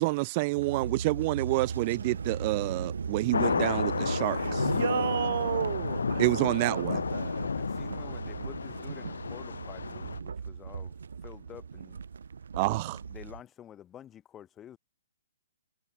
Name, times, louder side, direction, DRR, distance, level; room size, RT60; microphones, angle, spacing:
voice 1, 0.0-4.7 6.2-7.0 12.5-13.0, right 25 dB, 35° right, 1.2 m, -28 dB
sound 1, 0.6-13.4, right 6 dB, 75° right, 6.1 m, -38 dB
sound 2, 3.3-10.2, left 5 dB, 80° left, 1.0 m, -32 dB
voice 2, 4.3-6.2 6.6-7.5, right 9 dB, 60° right, 0.9 m, -33 dB
voice 3, 7.5-10.9 11.2-12.0 13.1-14.8, left 10 dB, 20° left, 3.6 m, -49 dB
hypercardioid pair, 135°, 0 cm